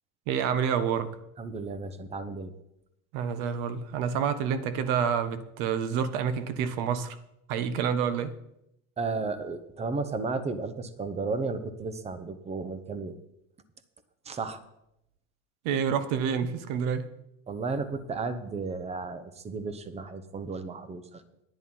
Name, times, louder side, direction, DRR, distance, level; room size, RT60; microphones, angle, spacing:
voice 1, 0.3-1.2 3.1-7.2 7.5-8.3 15.6-17.1, right 7 dB, 60° right, 1.2 m, -28 dB
voice 2, 1.4-2.5 9.0-13.2 14.2-14.6 17.5-21.2, right 4 dB, 15° right, 0.9 m, -33 dB
10.5 x 9.2 x 5.6 m
supercardioid pair, 135°, 38 cm